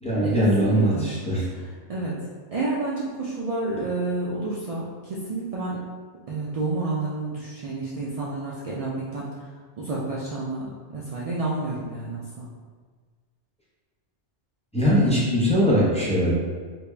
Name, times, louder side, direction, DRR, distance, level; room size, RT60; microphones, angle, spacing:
voice 1, 0.0-1.5 14.7-16.3, equal, 5° left, -9 dB, 0.8 m, -21 dB
voice 2, 0.6-1.1 1.9-2.2 2.5-5.8 6.3-9.4 9.8-12.5, right 2 dB, 70° right, -6 dB, 0.3 m, -30 dB
3.4 x 2.4 x 3.3 m, 1.5 s
omnidirectional pair, 1.2 m